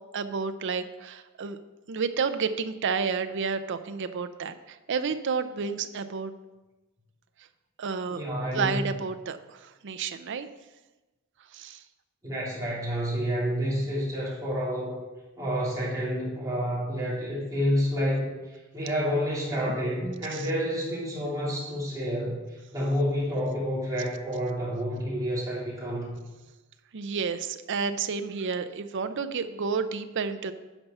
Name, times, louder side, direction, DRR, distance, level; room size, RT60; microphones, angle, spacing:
voice 1, 0.1-1.6 1.9-6.3 7.8-8.2 8.5-10.5 11.5-11.8 20.3-20.5 26.9-30.5, right 5 dB, 55° right, 9 dB, 0.5 m, -30 dB
voice 2, 8.1-8.9 12.2-15.0 15.4-18.3 18.7-26.2, equal, 15° right, -7 dB, 3.1 m, -29 dB
10.5 x 5.5 x 5.5 m, 1.1 s
head